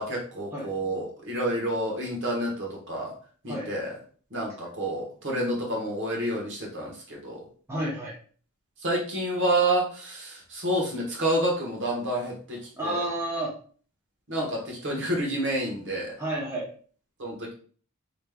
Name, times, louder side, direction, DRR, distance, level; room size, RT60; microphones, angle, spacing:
voice 1, 0.0-3.1 3.4-3.9 4.3-7.4 8.8-13.1 14.3-16.2 17.2-17.5, right 1 dB, 55° right, -1 dB, 1.2 m, -29 dB
voice 2, 7.7-8.1 12.8-13.5 16.2-16.7, right 1 dB, 10° right, -4 dB, 0.7 m, -30 dB
3.4 x 3.1 x 2.3 m, 0.44 s
head